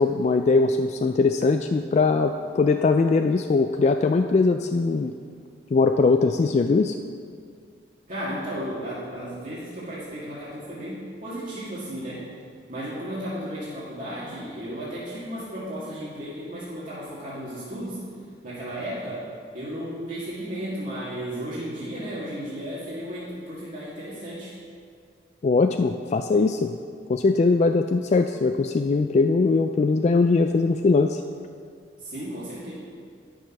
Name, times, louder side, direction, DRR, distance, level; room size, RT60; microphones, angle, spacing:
voice 1, 0.0-5.1 5.7-7.0 25.4-26.7 27.1-31.2, left 3 dB, 40° left, 6 dB, 0.3 m, -21 dB
voice 2, 8.1-12.2 12.7-18.0 18.4-19.3 19.5-24.5 32.0-32.7, equal, 45° right, -10 dB, 1.9 m, -34 dB
10.5 x 6.5 x 5.9 m, 2.2 s
head